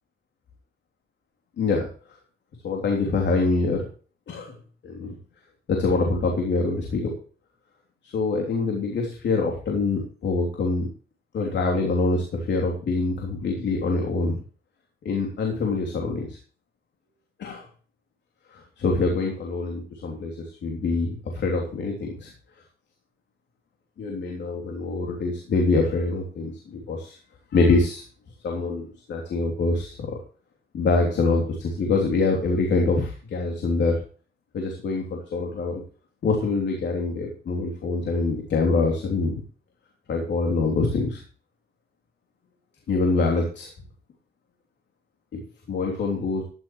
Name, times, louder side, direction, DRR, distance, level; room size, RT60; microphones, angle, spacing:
voice 1, 1.6-1.9 2.6-3.8 4.3-4.5 4.8-5.1 5.7-7.1 8.0-10.9 11.3-14.4 15.0-16.4 17.4-17.6 18.5-22.3 24.0-27.2 27.5-28.0 28.4-30.1 30.7-34.0 34.5-35.8 36.2-39.4 40.1-41.2 42.9-43.7 45.3-45.4 45.7-46.4, left 3 dB, 65° left, 0 dB, 3.3 m, -25 dB
13.5 x 11.5 x 3.2 m, 0.41 s
cardioid pair, 90°, 20 cm